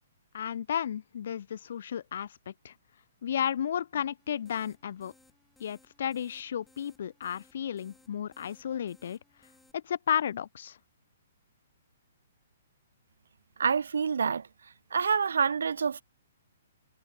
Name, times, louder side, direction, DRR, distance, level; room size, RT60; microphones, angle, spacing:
voice 1, 0.3-2.7 3.2-5.1 5.6-9.2 9.7-10.8, left 9 dB, 60° left, 0.4 m, -33 dB
sound 1, 4.2-9.7, left 2 dB, 5° left, 2.5 m, -64 dB
voice 2, 13.6-14.5 14.9-16.0, right 6 dB, 90° right, 0.3 m, -27 dB
hypercardioid pair, 155°, 0 cm